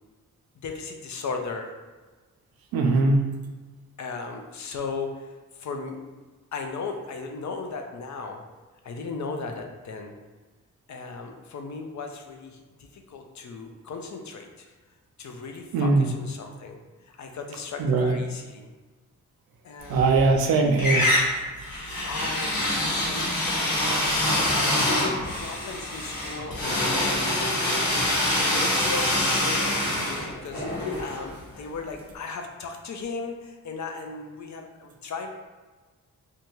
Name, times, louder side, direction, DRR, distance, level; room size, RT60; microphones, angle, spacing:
voice 1, 0.6-1.7 4.0-6.0 6.5-8.5 8.8-10.2 10.9-14.7 15.2-18.7 19.6-20.2 21.8-22.6 22.9-23.6 23.8-35.3, left 4 dB, 55° left, 4 dB, 0.5 m, -37 dB
voice 2, 2.7-3.3 15.7-16.1 17.8-18.2 19.9-21.1, right 3 dB, 80° right, 3 dB, 0.5 m, -21 dB
sound 1, 19.9-20.5 20.8-31.7, left 1 dB, 75° left, 1.0 m, -25 dB
2.7 x 2.3 x 2.9 m, 1.3 s
supercardioid pair, 45°, 35 cm